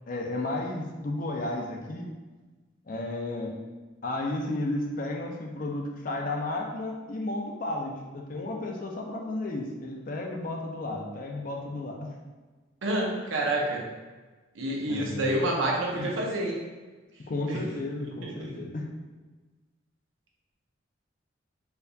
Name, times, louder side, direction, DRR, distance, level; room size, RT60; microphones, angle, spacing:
voice 1, 0.1-2.1 2.8-3.6 4.0-12.1 14.9-15.4 15.9-16.1 17.3-18.9, left 2 dB, 45° left, 0 dB, 0.5 m, -33 dB
voice 2, 12.8-13.8 14.5-16.6 17.5-17.6 18.2-18.5, right 1 dB, 85° right, -1 dB, 0.7 m, -28 dB
4.5 x 2.6 x 2.3 m, 1.3 s
head